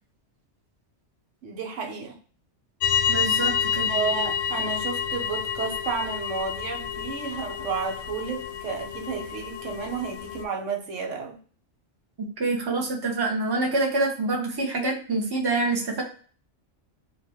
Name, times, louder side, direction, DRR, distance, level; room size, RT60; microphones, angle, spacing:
voice 1, 1.4-2.2 3.8-11.4, right 5 dB, 80° right, 1.1 m, -32 dB
sound 1, 2.8-10.4, left 8 dB, 70° left, 0.8 m, -29 dB
voice 2, 3.1-3.9 12.4-16.0, right 3 dB, 20° right, 0.8 m, -26 dB
3.1 x 2.5 x 4.2 m
omnidirectional pair, 1.2 m